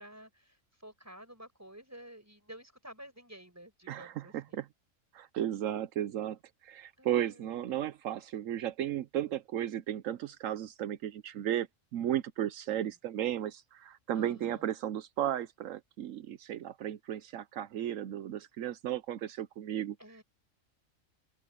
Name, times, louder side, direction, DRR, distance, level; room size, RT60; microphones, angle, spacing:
voice 1, 0.0-4.6 7.0-7.9 12.7-12.9 14.1-14.7 20.0-20.2, right 1 dB, 10° right, 5.9 m, -52 dB
voice 2, 3.9-4.7 5.1-20.0, right 11 dB, 80° right, 1.1 m, -35 dB
open air
omnidirectional pair, 1.3 m